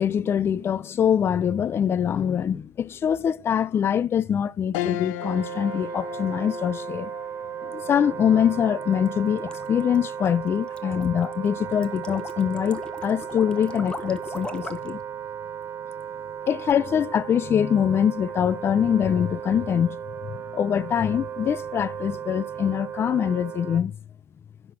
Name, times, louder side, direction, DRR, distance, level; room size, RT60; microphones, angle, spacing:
voice 1, 0.0-7.1 7.6-15.0 16.5-20.0 20.2-24.0, left 8 dB, 30° left, 0.4 m, -24 dB
sound 1, 4.7-14.3 14.8-14.9 16.2-16.7, left 11 dB, 85° left, 0.8 m, -39 dB
Wind instrument woodwind instrument, 5.2-23.8, right 9 dB, 35° right, 0.7 m, -36 dB
sound 2, 8.9-15.0, left 2 dB, 10° left, 1.0 m, -39 dB
10.5 x 5.9 x 6.2 m
cardioid pair, 130°, 8 cm